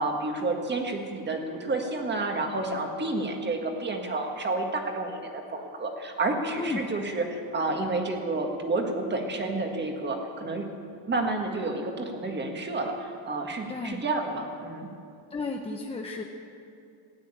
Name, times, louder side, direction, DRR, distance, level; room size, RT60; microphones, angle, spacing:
voice 1, 0.0-10.7 11.1-14.9, right 2 dB, 20° right, 3 dB, 1.7 m, -30 dB
voice 2, 13.7-14.0 15.3-16.2, left 3 dB, 15° left, 2 dB, 0.6 m, -33 dB
16.5 x 9.2 x 8.8 m, 2.5 s
cardioid pair, 150°, 47 cm